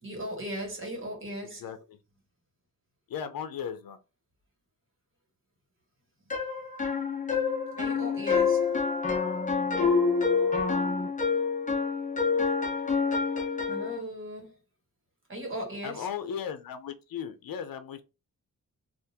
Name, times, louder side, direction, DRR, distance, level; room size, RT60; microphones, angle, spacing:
voice 1, 0.0-1.6 7.8-8.7 13.7-14.6 15.3-16.1, equal, 35° right, 1.5 m, -37 dB
voice 2, 1.6-2.0 3.1-4.0 15.8-18.0, left 8 dB, 75° left, 0.6 m, -36 dB
sound 1, 6.3-14.0, left 5 dB, 20° left, 0.7 m, -27 dB
3.6 x 2.5 x 2.8 m
wide cardioid pair, 145°, 35 cm